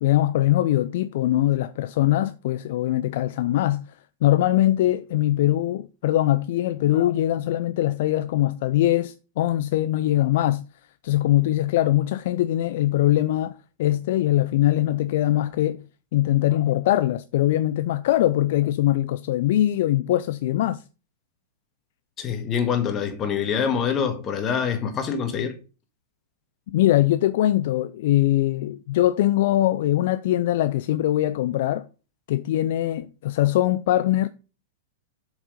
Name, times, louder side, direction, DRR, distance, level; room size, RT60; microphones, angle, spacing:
voice 1, 0.0-10.6 11.0-13.5 13.8-15.8 16.1-20.8 26.7-31.9 32.3-34.3, left 14 dB, 55° left, 0.4 m, -22 dB
voice 2, 22.2-25.6, left 7 dB, 30° left, 1.8 m, -25 dB
7.3 x 4.9 x 5.1 m
figure-of-eight pair, 100°, 0 cm